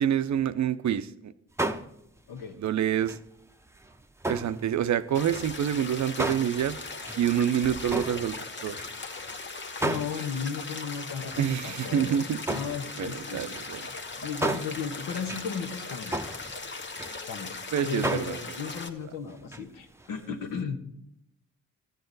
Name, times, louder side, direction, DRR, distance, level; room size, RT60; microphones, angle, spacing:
voice 1, 0.0-1.3 2.6-3.2 4.3-6.8 7.2-8.3 8.6-8.8 11.4-12.5 13.0-13.8 17.7-18.6, right 9 dB, 60° right, 14 dB, 0.6 m, -27 dB
sound 1, 1.6-2.7 3.0-4.8 5.1-9.4 9.8-10.6 11.2-17.6 18.0-19.7 19.9-20.2 20.6-20.7, right 2 dB, 10° right, 0.6 m, -35 dB
sound 2, 5.1-18.9, left 3 dB, 35° left, 1.1 m, -39 dB
voice 2, 9.8-12.2 12.5-13.6 14.2-16.2 17.3-17.5 17.8-20.8, left 6 dB, 85° left, 6 dB, 1.2 m, -35 dB
13.5 x 8.0 x 4.0 m, 0.82 s
cardioid pair, 60°, 33 cm